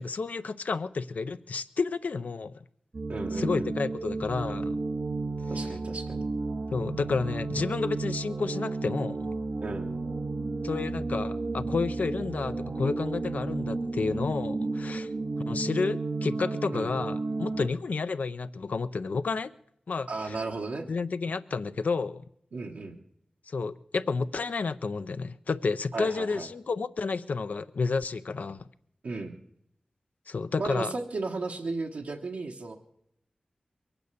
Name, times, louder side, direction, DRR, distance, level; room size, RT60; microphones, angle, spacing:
voice 1, 0.0-2.6 3.3-4.8 5.6-5.7 6.7-9.3 10.6-15.1 15.5-19.5 19.9-20.4 20.9-22.2 23.5-28.7 30.3-30.9, left 4 dB, 75° left, 12 dB, 0.6 m, -31 dB
sound 1, 2.9-17.7, right 3 dB, 50° right, 0.6 m, -32 dB
voice 2, 3.1-3.7 5.5-6.2 9.6-9.9 16.7-16.9 20.1-20.9 22.5-23.0 25.9-26.5 29.0-29.3 30.6-32.7, right 3 dB, 90° right, -1 dB, 1.2 m, -34 dB
22.0 x 9.0 x 6.8 m, 0.73 s
wide cardioid pair, 60°, 3 cm